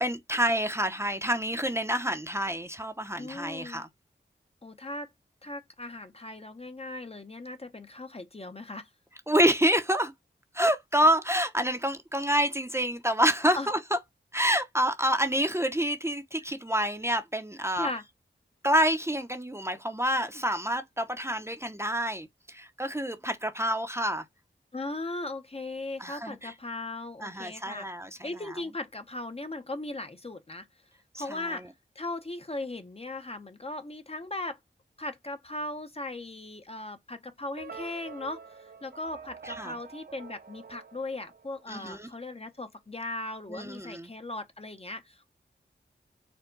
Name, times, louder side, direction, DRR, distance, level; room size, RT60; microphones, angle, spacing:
voice 1, 0.0-3.9 9.3-10.1 10.5-13.8 14.3-17.9 18.6-24.2 26.0-26.5 27.2-28.3 31.1-31.6 39.6-39.7 41.7-42.1 43.5-44.1, equal, 15° right, 0.7 m, -27 dB
voice 2, 3.2-3.8 4.6-5.1 5.4-8.9 13.5-13.7 16.4-16.5 17.8-18.0 24.7-27.9 28.2-30.7 31.2-31.7 32.0-34.6 35.0-45.3, left 2 dB, 30° left, 0.7 m, -38 dB
sound 1, 37.6-41.9, right 5 dB, 55° right, 0.6 m, -46 dB
4.5 x 2.2 x 3.8 m
wide cardioid pair, 55°, 19 cm